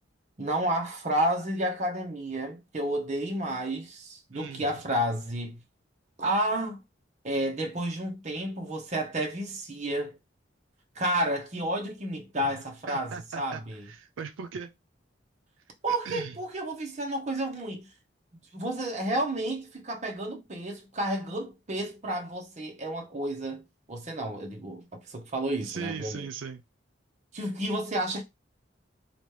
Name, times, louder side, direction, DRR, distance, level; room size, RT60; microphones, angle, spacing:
voice 1, 0.4-5.6 6.2-6.8 7.2-10.2 11.0-13.8 15.8-17.9 18.5-26.2 27.3-28.2, right 1 dB, 35° right, 0.7 m, -31 dB
voice 2, 4.3-4.8 12.4-12.5 12.9-14.7 15.9-16.4 25.6-26.6, right 6 dB, 85° right, 0.4 m, -39 dB
2.9 x 2.2 x 3.1 m
head